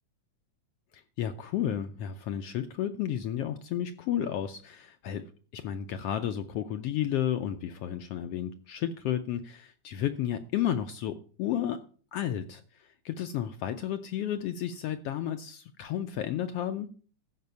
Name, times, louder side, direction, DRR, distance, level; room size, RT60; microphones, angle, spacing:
voice 1, 0.9-5.2 5.5-11.8 12.1-16.9, left 10 dB, 75° left, 8 dB, 1.4 m, -32 dB
14.0 x 5.2 x 6.8 m, 0.41 s
omnidirectional pair, 3.3 m